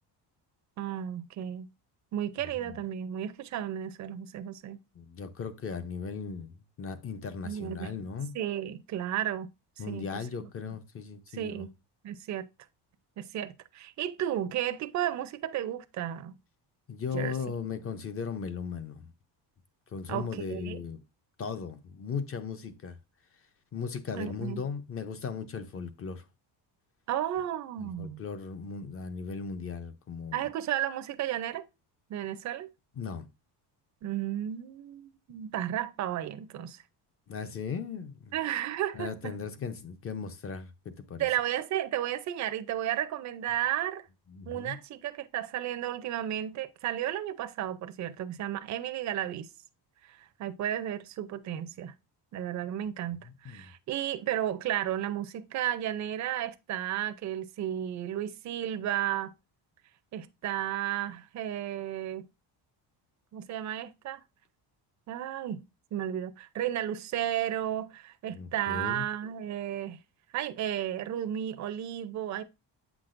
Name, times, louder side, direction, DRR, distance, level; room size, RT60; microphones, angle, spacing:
voice 1, 0.8-1.7 2.1-4.8 7.4-7.9 8.3-9.5 9.9-10.1 10.4-10.5 11.3-11.7 12.0-12.4 13.2-16.3 17.1-17.3 20.1-20.8 24.1-24.6 27.1-28.2 30.3-31.6 32.1-32.7 34.0-36.8 38.3-39.3 41.2-44.1 44.5-49.5 50.1-51.9 52.3-59.3 60.1-62.3 63.3-64.2 65.1-65.7 65.9-70.0 70.3-72.4, right 11 dB, 45° right, 0.5 m, -33 dB
voice 2, 4.9-8.3 9.8-11.7 16.9-19.1 19.9-21.0 21.4-23.0 23.7-26.2 27.8-30.5 33.0-33.3 37.3-38.3 38.9-41.3 44.3-44.8 53.2-53.7 68.3-69.1, left 5 dB, 35° left, 0.6 m, -37 dB
8.2 x 6.0 x 2.5 m
cardioid pair, 170°, 42 cm